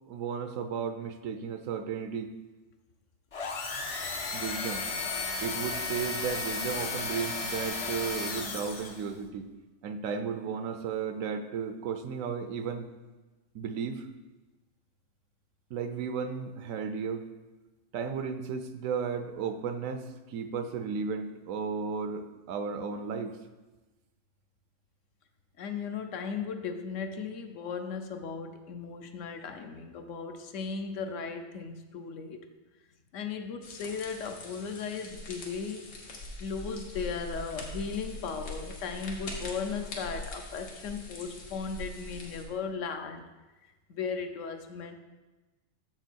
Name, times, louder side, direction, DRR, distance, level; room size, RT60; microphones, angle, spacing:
voice 1, 0.1-2.3 4.3-4.9 5.4-9.5 9.8-12.9 13.5-14.1 15.7-17.2 17.9-23.3, right 6 dB, 75° right, 9 dB, 1.0 m, -34 dB
sound 1, 3.3-9.1, left 3 dB, 45° left, 0.4 m, -34 dB
voice 2, 25.6-32.5 33.1-35.9 36.4-43.2 43.9-44.9, left 5 dB, 70° left, 7 dB, 1.0 m, -36 dB
sound 2, 33.6-42.4, left 2 dB, 90° left, 1.6 m, -42 dB
6.9 x 6.1 x 4.4 m, 1.2 s
omnidirectional pair, 1.4 m